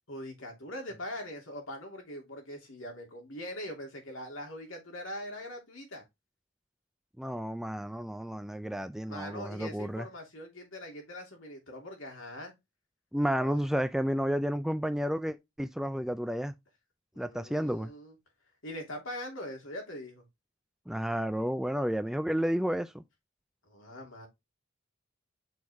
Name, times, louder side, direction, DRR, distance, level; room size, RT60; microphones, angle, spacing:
voice 1, 0.1-6.0 9.1-12.5 13.3-13.6 17.1-18.1 18.6-20.2 23.7-24.3, left 1 dB, 70° left, 2.8 m, -42 dB
voice 2, 7.2-10.1 13.1-16.5 17.2-17.9 20.9-23.0, equal, ahead, 0.3 m, -31 dB
6.3 x 4.8 x 3.5 m
head